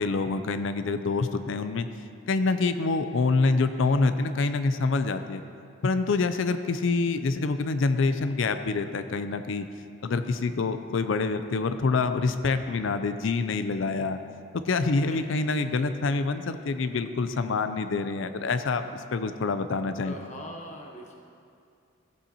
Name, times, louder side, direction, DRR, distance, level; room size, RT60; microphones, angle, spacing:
voice 1, 0.0-1.9 2.3-5.4 5.8-9.7 10.0-14.2 14.7-20.2, left 3 dB, 60° left, 10 dB, 0.4 m, -26 dB
voice 2, 15.1-15.7 20.0-21.1, equal, 35° left, 0 dB, 1.1 m, -42 dB
15.0 x 8.1 x 2.9 m, 2.4 s
head